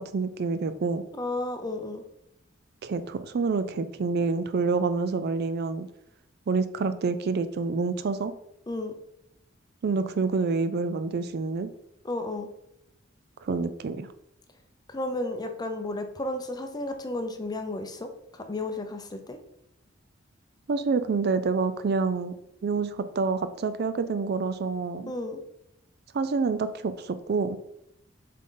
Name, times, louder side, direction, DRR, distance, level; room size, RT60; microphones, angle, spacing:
voice 1, 0.0-1.0 2.8-5.9 6.5-8.3 9.8-11.7 13.4-14.1 20.7-22.3 22.6-25.1 26.1-27.6, right 4 dB, 55° right, 11 dB, 0.4 m, -27 dB
voice 2, 1.1-2.0 8.7-8.9 12.0-12.5 14.9-19.4 25.1-25.4, left 2 dB, 20° left, 6 dB, 0.6 m, -33 dB
7.5 x 3.7 x 3.8 m, 0.79 s
head